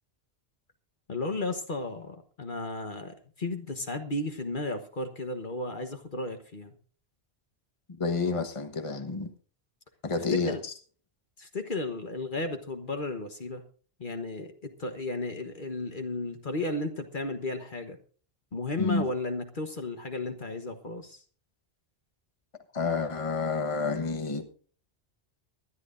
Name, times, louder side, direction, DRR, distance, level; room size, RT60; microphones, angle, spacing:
voice 1, 1.1-6.8 10.3-10.6 11.4-13.6 14.0-18.0 18.5-21.2, left 2 dB, 50° left, 1.4 m, -34 dB
voice 2, 8.0-9.3 10.0-10.7 18.8-19.1 22.7-24.4, left 4 dB, 30° left, 1.3 m, -29 dB
24.0 x 10.5 x 2.6 m
omnidirectional pair, 1.1 m